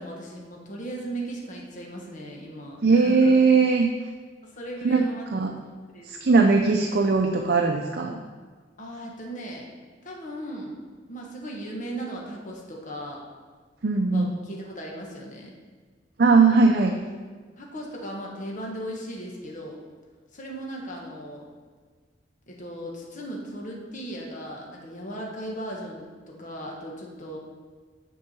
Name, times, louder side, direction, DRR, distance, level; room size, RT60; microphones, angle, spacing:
voice 1, 0.0-3.3 4.4-5.3 5.9-6.1 8.8-9.7 10.0-10.8 11.1-13.2 14.1-15.5 17.6-19.8 20.3-21.5 22.5-27.4, right 1 dB, 45° left, -1 dB, 1.3 m, -37 dB
voice 2, 2.8-3.9 4.8-5.0 5.3-5.5 6.1-8.2 13.8-14.3 16.2-17.0, right 4 dB, 55° right, 2 dB, 0.5 m, -19 dB
6.8 x 4.6 x 6.9 m, 1.5 s
head